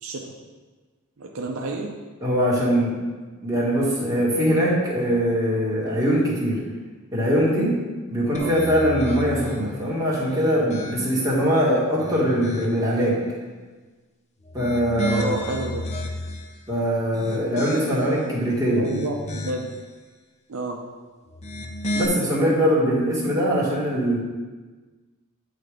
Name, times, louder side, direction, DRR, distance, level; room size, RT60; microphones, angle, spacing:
voice 1, 0.0-0.3 1.2-2.0 8.3-8.5 15.0-15.9 18.8-19.7 20.5-20.8, right 2 dB, 70° right, 1 dB, 0.6 m, -30 dB
voice 2, 2.2-2.9 3.4-6.6 7.1-7.8 8.1-13.2 14.5-15.4 16.7-18.8 21.9-24.2, equal, 15° right, -7 dB, 1.8 m, -22 dB
sound 1, 8.3-9.6 10.2-11.3 11.8-12.9 14.4-16.5 17.0-18.2 18.7-19.8 21.3-22.1, left 1 dB, 30° left, 0.6 m, -32 dB
8.8 x 3.4 x 5.0 m, 1.3 s
head